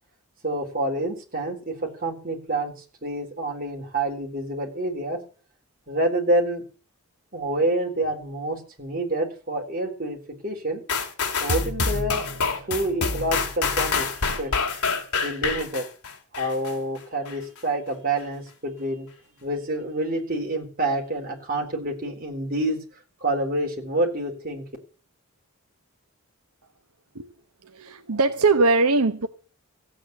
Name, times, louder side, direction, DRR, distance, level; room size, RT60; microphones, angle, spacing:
voice 1, 0.4-2.7 3.0-5.2 5.9-6.6 7.3-10.2 10.4-10.8 11.4-12.2 12.7-14.1 14.4-14.5 15.2-15.8 16.3-19.1 19.4-22.8 23.2-24.6, right 1 dB, 40° right, 1 dB, 3.9 m, -27 dB
sound 1, 10.9-16.7 17.3-17.4, left 4 dB, 85° left, 2.5 m, -26 dB
voice 2, 27.6-29.3, right 3 dB, 80° right, 7 dB, 1.0 m, -21 dB
15.5 x 8.8 x 8.1 m, 0.39 s
head